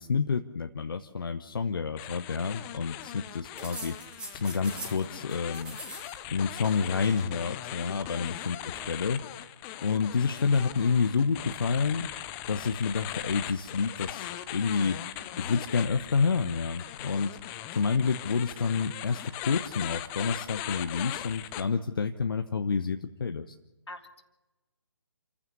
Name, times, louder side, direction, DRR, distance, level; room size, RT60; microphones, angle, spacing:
voice 1, 0.0-5.8 6.3-9.2 9.8-12.1 12.5-15.0 15.4-17.3 17.7-23.5, left 5 dB, 50° left, 5 dB, 1.2 m, -29 dB
sound 1, 2.0-21.6, left 13 dB, 15° left, 0.7 m, -40 dB
sound 2, 3.6-5.0 5.3-6.2 6.4-7.3 8.3-9.0, right 2 dB, 5° right, 2.1 m, -44 dB
voice 2, 23.9-24.3, left 2 dB, 70° left, 5 dB, 2.8 m, -45 dB
28.5 x 15.5 x 7.0 m, 1.1 s
figure-of-eight pair, 145°, 15 cm